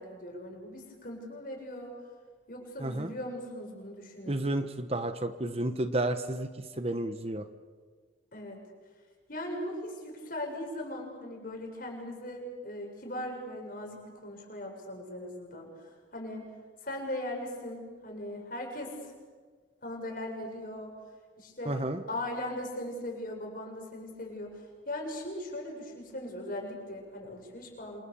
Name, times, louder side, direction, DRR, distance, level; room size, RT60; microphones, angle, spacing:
voice 1, 0.0-1.9 2.5-4.3 8.3-8.6 9.3-16.5 16.8-19.1 19.8-21.0 21.4-28.0, left 1 dB, 45° left, 1 dB, 7.4 m, -39 dB
voice 2, 4.3-7.5 21.6-22.0, right 1 dB, 30° right, 9 dB, 1.1 m, -31 dB
28.5 x 27.5 x 7.2 m, 1.5 s
head